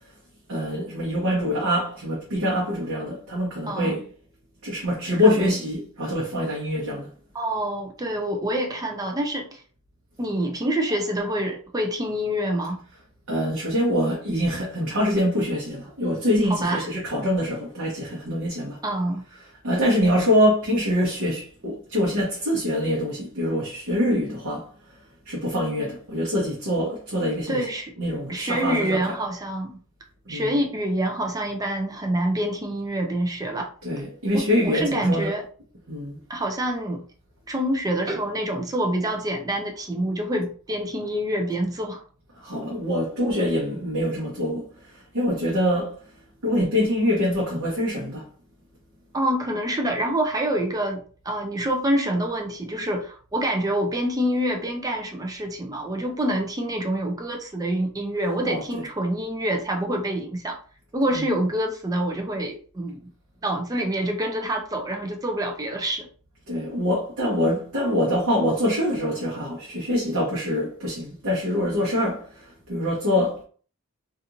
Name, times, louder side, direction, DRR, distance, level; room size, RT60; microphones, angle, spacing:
voice 1, 0.5-4.1 4.6-7.1 13.3-18.8 19.6-24.7 25.2-27.7 28.0-29.1 30.3-30.5 33.8-35.3 35.9-36.2 42.4-46.0 46.4-48.2 58.4-58.8 61.1-61.3 66.5-73.4, equal, 70° right, 0.9 m, -24 dB
voice 2, 3.7-4.0 5.2-5.5 7.3-9.6 10.2-12.8 16.5-16.9 18.8-19.3 27.5-27.9 28.3-29.8 30.3-33.7 34.3-35.4 36.3-37.0 37.5-42.0 49.1-60.6 60.9-63.0 63.4-66.1, right 1 dB, 15° right, 0.4 m, -26 dB
2.8 x 2.5 x 2.5 m
head